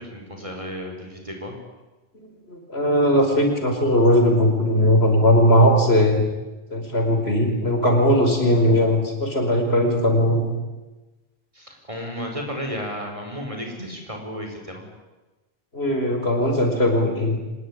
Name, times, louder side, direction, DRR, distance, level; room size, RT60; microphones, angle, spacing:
voice 1, 0.0-1.5 11.5-14.8, equal, 30° right, 2 dB, 5.0 m, -33 dB
voice 2, 2.1-6.2 6.7-10.4 13.8-13.9 15.7-17.4, equal, 80° left, 3 dB, 5.3 m, -19 dB
25.5 x 20.5 x 10.0 m, 1.1 s
omnidirectional pair, 1.0 m